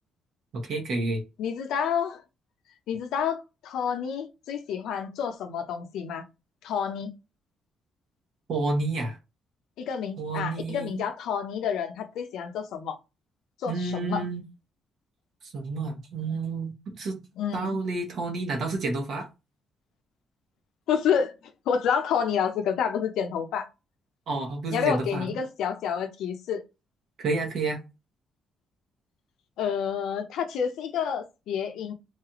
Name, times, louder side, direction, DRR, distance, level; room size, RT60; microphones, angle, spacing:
voice 1, 0.5-1.2 8.5-9.2 10.2-11.0 13.7-14.4 15.4-17.2 17.5-19.3 24.3-25.4 27.2-27.8, right 3 dB, 65° right, 1.1 m, -30 dB
voice 2, 1.4-2.2 2.9-6.3 6.6-7.1 9.8-13.0 13.6-14.2 17.4-17.8 20.9-21.4 21.7-23.7 24.7-26.6 29.6-31.9, left 7 dB, 80° left, 0.6 m, -29 dB
3.0 x 2.4 x 2.9 m
cardioid pair, 90°, 0 cm